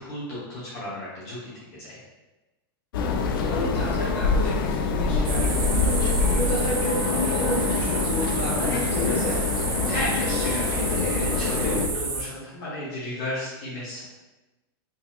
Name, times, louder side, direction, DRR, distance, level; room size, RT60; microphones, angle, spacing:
voice 1, 0.0-1.5 1.8-2.0 9.9-14.0, left 1 dB, 35° left, -9 dB, 0.9 m, -33 dB
sound 1, 2.9-11.9, left 4 dB, 60° left, 0.4 m, -25 dB
voice 2, 3.2-9.4, equal, 15° left, -10 dB, 1.3 m, -31 dB
sound 2, 4.9-11.4, equal, 5° right, 1.4 m, -42 dB
sound 3, 5.2-12.2, right 3 dB, 50° right, 0.7 m, -30 dB
3.8 x 2.8 x 2.3 m, 1.1 s
supercardioid pair, 175°, 13 cm